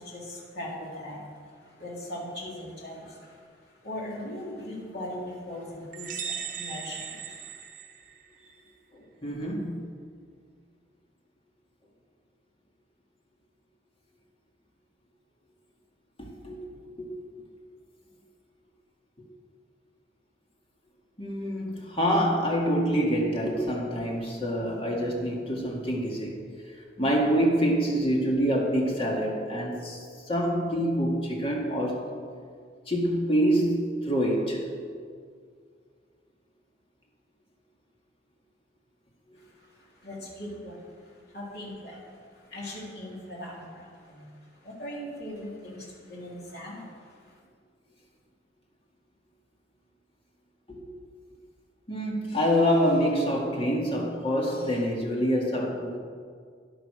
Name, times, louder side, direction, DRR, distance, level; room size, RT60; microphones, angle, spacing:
voice 1, 0.0-3.5 3.8-7.6 39.3-47.4, left 1 dB, 60° left, -5 dB, 3.4 m, -40 dB
sound 1, 5.9-8.5, right 7 dB, 45° right, 1.1 m, -38 dB
voice 2, 8.9-9.8 16.2-16.6 17.0-17.1 19.2-19.3 21.2-26.4 27.0-32.1 32.9-34.7 50.7-50.9 51.9-56.0, equal, 30° left, -1 dB, 2.1 m, -26 dB
11.0 x 11.0 x 6.3 m, 2.1 s
head